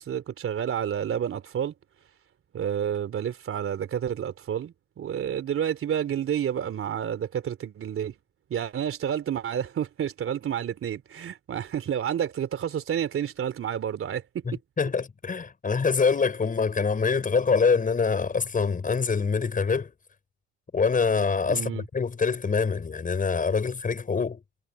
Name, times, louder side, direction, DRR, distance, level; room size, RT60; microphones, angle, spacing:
voice 1, 0.0-1.7 2.5-8.1 8.5-14.2 21.5-21.8, right 9 dB, 40° right, 3.4 m, -30 dB
voice 2, 14.4-19.9 20.7-24.4, left 5 dB, 25° left, 6.1 m, -25 dB
hypercardioid pair, 85°, 32 cm